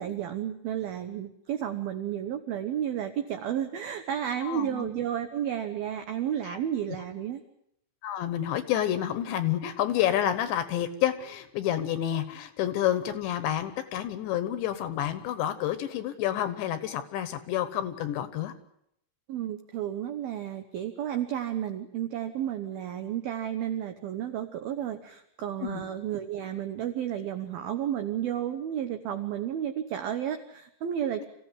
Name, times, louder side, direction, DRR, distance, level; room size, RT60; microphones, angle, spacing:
voice 1, 0.0-7.4 19.3-31.2, right 10 dB, 80° right, 8 dB, 2.1 m, -32 dB
voice 2, 4.4-4.9 6.4-6.6 6.9-7.0 8.0-18.5 25.6-25.8, left 11 dB, 70° left, 11 dB, 3.1 m, -29 dB
27.0 x 16.0 x 9.8 m, 0.75 s
omnidirectional pair, 6.0 m